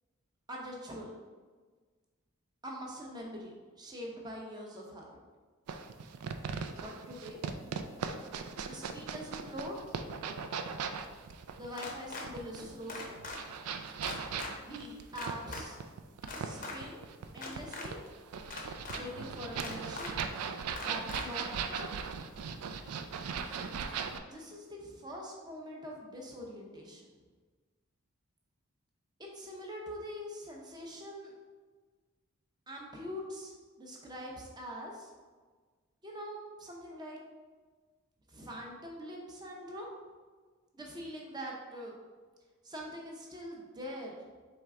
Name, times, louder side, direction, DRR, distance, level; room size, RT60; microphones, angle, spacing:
voice 1, 0.5-1.1 2.6-5.1 6.7-7.4 8.6-9.8 11.5-13.2 14.6-15.8 16.3-17.0 17.3-18.0 18.9-20.2 20.8-21.9 24.2-27.0 29.2-31.3 32.7-35.1 36.0-37.2 38.3-39.9 40.7-41.9 42.6-44.1, equal, 20° right, -1 dB, 0.6 m, -44 dB
sound 1, 5.7-24.2, right 6 dB, 90° right, 0.4 m, -39 dB
sound 2, 11.8-12.3 12.9-13.4 14.0-14.5 15.2-15.6 16.2-16.8 17.3-17.9 18.5-19.0 19.6-20.1 20.8-21.2, left 3 dB, 35° left, 0.6 m, -41 dB
4.4 x 3.3 x 3.7 m, 1.4 s
head